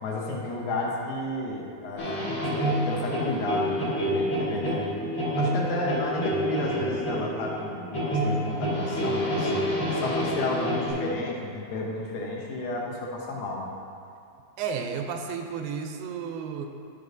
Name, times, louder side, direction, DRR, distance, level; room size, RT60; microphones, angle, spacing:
voice 1, 0.0-9.5 9.9-13.7, left 2 dB, 75° left, -2 dB, 2.5 m, -32 dB
sound 1, 2.0-10.9, equal, 55° left, 0.9 m, -28 dB
voice 2, 14.6-16.7, right 6 dB, 85° right, 5 dB, 2.3 m, -32 dB
12.0 x 4.9 x 2.6 m, 2.4 s
omnidirectional pair, 4.2 m